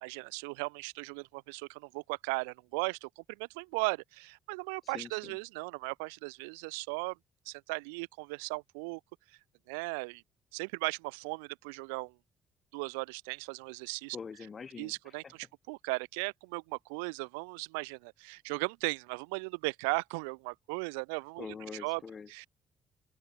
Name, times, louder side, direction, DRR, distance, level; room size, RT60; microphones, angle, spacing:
voice 1, 0.0-7.2 7.5-9.0 9.3-9.4 9.7-10.2 10.5-12.1 12.7-14.2 14.8-21.5 21.8-22.0 22.3-22.5, right 32 dB, 75° right, 0.8 m, -37 dB
voice 2, 4.9-5.4 14.1-14.9 21.4-22.3, left 5 dB, 40° left, 1.3 m, -44 dB
open air
hypercardioid pair, 45°, 0 cm